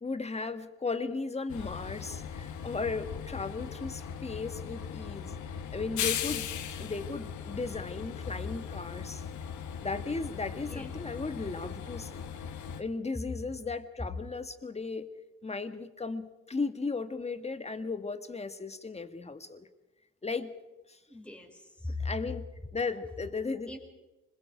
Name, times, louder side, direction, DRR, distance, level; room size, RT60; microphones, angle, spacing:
voice 1, 0.0-5.4 5.7-9.2 9.8-12.3 12.8-15.1 15.4-19.7 20.2-20.5 20.9-21.0 22.0-22.4 22.7-23.8, left 4 dB, 20° left, 9 dB, 1.7 m, -36 dB
Train, 1.5-12.8, left 8 dB, 75° left, 1.5 m, -38 dB
voice 2, 10.6-10.9 21.1-22.1 23.7-23.8, left 3 dB, 5° left, 2 dB, 4.9 m, -39 dB
26.0 x 21.5 x 5.1 m, 1.1 s
cardioid pair, 90°, 30 cm